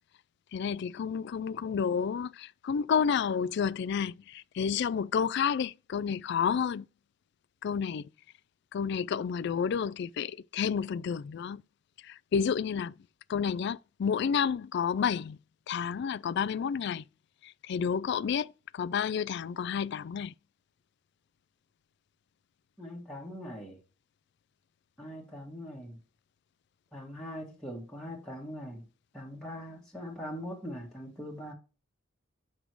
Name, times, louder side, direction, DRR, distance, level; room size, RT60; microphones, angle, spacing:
voice 1, 0.5-6.9 7.6-8.1 8.7-11.6 12.0-12.9 13.3-15.4 15.7-17.0 17.4-20.3, left 7 dB, 60° left, 0.3 m, -30 dB
voice 2, 22.8-23.8 25.0-26.0 26.9-28.8 29.1-31.5, equal, 5° left, 1.5 m, -41 dB
6.0 x 5.4 x 4.6 m
head